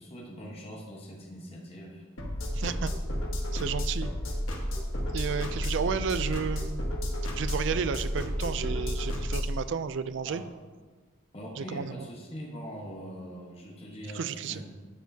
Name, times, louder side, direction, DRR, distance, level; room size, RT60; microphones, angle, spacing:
voice 1, 0.0-2.0 10.2-10.5 11.3-14.8, equal, 30° left, -2 dB, 1.1 m, -42 dB
sound 1, 2.2-9.6, equal, 90° left, 1.3 m, -31 dB
voice 2, 2.5-2.9 3.5-4.1 5.1-6.8 7.4-10.4 11.6-12.1 14.1-14.6, right 6 dB, 60° right, 12 dB, 0.3 m, -32 dB
10.0 x 6.4 x 2.7 m, 1.4 s
head